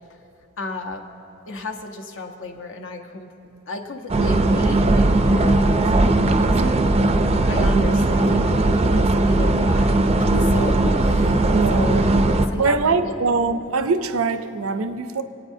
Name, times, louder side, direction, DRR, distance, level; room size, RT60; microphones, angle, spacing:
voice 1, 0.6-1.1 1.5-3.3 3.7-13.1, left 2 dB, 65° left, 4 dB, 0.9 m, -33 dB
sound 1, 4.1-12.5, right 2 dB, 30° right, 0.4 m, -18 dB
voice 2, 11.5-11.9 12.6-15.2, right 4 dB, 75° right, 10 dB, 0.6 m, -22 dB
25.5 x 9.0 x 2.7 m, 2.8 s
head